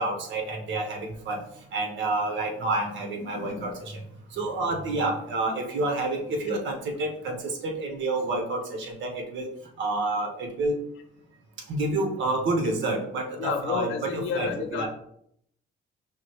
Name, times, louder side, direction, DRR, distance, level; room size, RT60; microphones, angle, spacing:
voice 1, 0.0-1.4 1.7-4.0 4.3-9.5 9.8-10.8 11.7-14.9, right 2 dB, 70° right, 1 dB, 1.2 m, -29 dB
voice 2, 3.2-3.7 13.4-14.9, left 6 dB, 80° left, 6 dB, 0.6 m, -31 dB
5.9 x 2.2 x 3.1 m, 0.70 s
cardioid pair, 90°, 20 cm